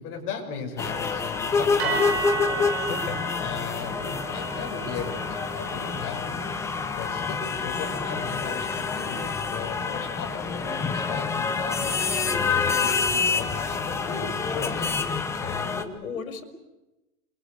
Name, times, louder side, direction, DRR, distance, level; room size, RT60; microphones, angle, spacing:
voice 1, 0.0-2.9 3.4-6.7 7.0-14.9, left 6 dB, 30° left, 1 dB, 6.7 m, -37 dB
sound 1, 0.8-15.8, left 5 dB, 5° left, 1.0 m, -27 dB
sound 2, 1.8-10.1, right 4 dB, 45° right, 5.3 m, -36 dB
voice 2, 2.9-3.2 15.3-16.4, left 6 dB, 65° left, 8 dB, 5.5 m, -35 dB
29.0 x 23.5 x 8.4 m, 1.0 s
hypercardioid pair, 165°, 44 cm